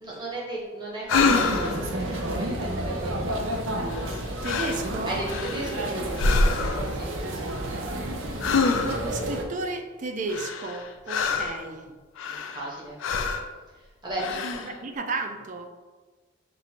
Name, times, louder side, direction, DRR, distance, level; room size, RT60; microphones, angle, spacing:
voice 1, 0.0-3.4 5.0-7.6 8.3-8.5 11.1-11.4 12.2-13.0 13.7-14.6, right 1 dB, 20° right, -5 dB, 1.0 m, -36 dB
sound 1, 1.1-1.8 3.9-4.2 4.4-4.9 5.3-5.8 6.2-6.9 8.4-9.1 10.3-11.6 12.2-12.7 13.0-13.5 14.1-14.7, left 4 dB, 80° left, 0.4 m, -26 dB
sound 2, 1.1-9.4, right 1 dB, 85° right, 0.6 m, -31 dB
voice 2, 4.4-5.2 8.5-12.0 14.8-15.7, right 3 dB, 40° right, 6 dB, 0.4 m, -33 dB
5.4 x 2.5 x 2.8 m, 1.3 s
head